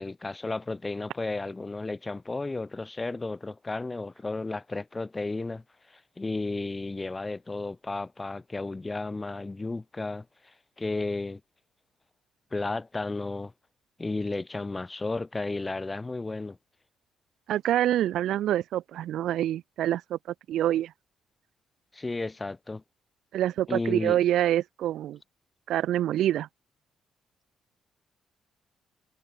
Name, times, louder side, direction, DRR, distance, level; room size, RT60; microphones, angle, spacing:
voice 1, 0.0-11.4 12.5-13.5 14.0-16.6 21.9-22.8 23.7-24.2, left 3 dB, 20° left, 5.6 m, -33 dB
voice 2, 17.5-20.2 20.5-20.9 23.3-25.2 25.7-26.5, right 12 dB, 80° right, 0.9 m, -26 dB
cardioid pair, 90°, 0 cm